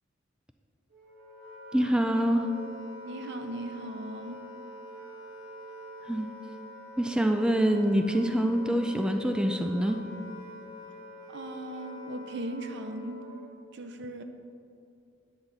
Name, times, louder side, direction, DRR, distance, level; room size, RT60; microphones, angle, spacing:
Wind instrument woodwind instrument, 0.9-13.6, equal, 80° right, 1.3 m, -45 dB
voice 1, 1.7-2.5 6.1-6.3 7.0-10.0, equal, 5° right, 5 dB, 0.3 m, -25 dB
voice 2, 3.1-4.5 11.3-13.3 13.7-14.2, right 1 dB, 60° right, 7 dB, 0.6 m, -38 dB
9.5 x 4.0 x 7.1 m, 2.5 s
head